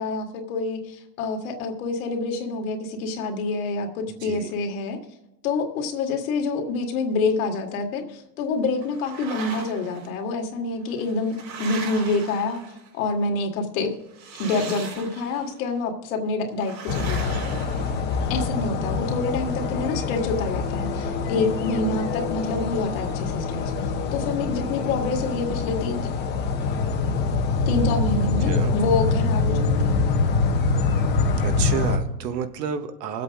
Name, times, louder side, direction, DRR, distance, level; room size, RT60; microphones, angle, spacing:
voice 1, 0.0-5.0 5.4-12.6 12.9-13.9 14.4-17.4 18.3-26.1 27.7-29.9, left 3 dB, 55° left, 3 dB, 2.3 m, -27 dB
sound 1, 8.8-10.1 10.9-13.0 14.1-15.5 16.6-18.5, right 5 dB, 85° right, 4.6 m, -39 dB
sound 2, 16.9-32.0, left 4 dB, 20° left, 0.9 m, -25 dB
voice 2, 31.4-33.2, right 7 dB, 70° right, 8 dB, 1.5 m, -30 dB
21.5 x 8.2 x 3.7 m, 0.97 s
supercardioid pair, 160°, 50 cm